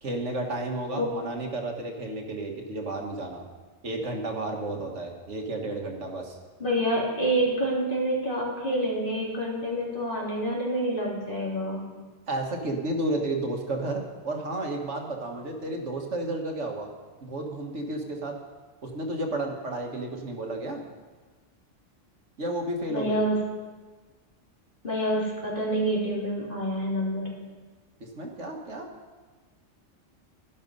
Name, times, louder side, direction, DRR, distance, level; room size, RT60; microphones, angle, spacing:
voice 1, 0.0-3.5 3.8-6.4 12.3-16.9 17.2-18.3 18.8-20.8 22.4-23.2 28.0-28.9, right 2 dB, 70° right, 2 dB, 1.8 m, -32 dB
voice 2, 6.6-11.8 22.9-23.4 24.8-27.3, right 1 dB, 45° left, -4 dB, 3.4 m, -27 dB
12.5 x 11.5 x 5.4 m, 1.4 s
omnidirectional pair, 1.3 m